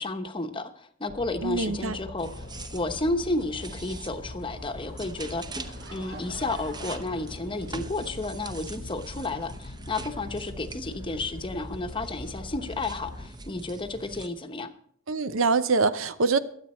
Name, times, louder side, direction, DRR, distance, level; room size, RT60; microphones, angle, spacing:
voice 1, 0.0-2.4 2.7-14.7, left 2 dB, 25° left, 7 dB, 0.9 m, -32 dB
sound 1, 1.1-13.3, left 2 dB, 60° left, 1.0 m, -43 dB
voice 2, 1.4-2.0 15.1-16.4, right 4 dB, 75° right, 13 dB, 0.7 m, -24 dB
sound 2, 2.2-14.3, right 2 dB, 20° right, 0.8 m, -43 dB
Laughter / Crowd, 5.3-8.2, right 3 dB, 50° right, 1.7 m, -47 dB
23.0 x 8.0 x 4.3 m, 0.62 s
head